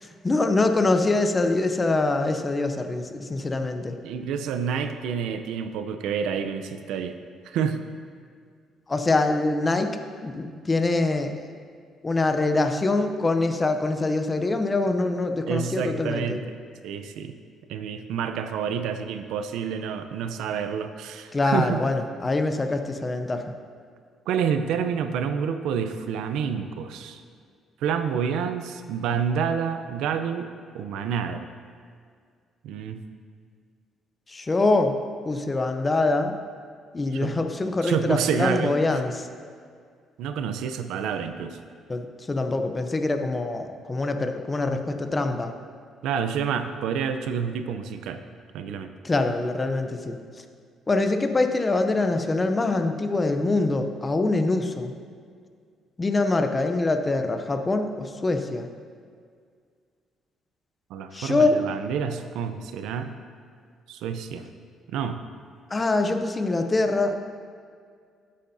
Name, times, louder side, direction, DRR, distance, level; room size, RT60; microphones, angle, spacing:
voice 1, 0.0-4.0 8.9-9.9 10.2-11.5 12.0-16.4 21.3-23.4 34.3-35.0 35.3-36.4 36.9-39.3 41.9-45.5 49.0-50.2 50.9-54.9 56.0-58.7 61.1-61.6 65.7-67.1, left 2 dB, 20° left, 7 dB, 0.6 m, -24 dB
voice 2, 4.0-7.2 7.4-7.8 15.5-16.6 16.8-17.4 17.7-21.8 24.3-27.2 27.8-30.5 30.7-31.5 32.6-33.0 37.1-37.4 37.8-38.8 40.2-41.6 46.0-48.2 48.5-48.9 60.9-63.1 63.9-64.5 64.9-65.2, right 7 dB, 85° right, 8 dB, 0.5 m, -28 dB
13.0 x 8.5 x 2.7 m, 2.1 s
cardioid pair, 135°, 0 cm